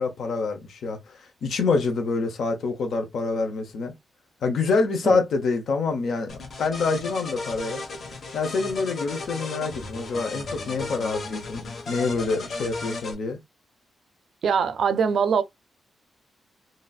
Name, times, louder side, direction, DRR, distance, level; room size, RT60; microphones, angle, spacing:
voice 1, 0.0-3.9 4.4-7.8 8.3-13.4, left 4 dB, 65° left, 0.9 m, -26 dB
sound 1, 6.3-13.1, left 3 dB, 45° left, 1.2 m, -35 dB
voice 2, 14.4-15.4, right 6 dB, 60° right, 0.5 m, -22 dB
4.0 x 2.1 x 2.4 m
wide cardioid pair, 175°, 0 cm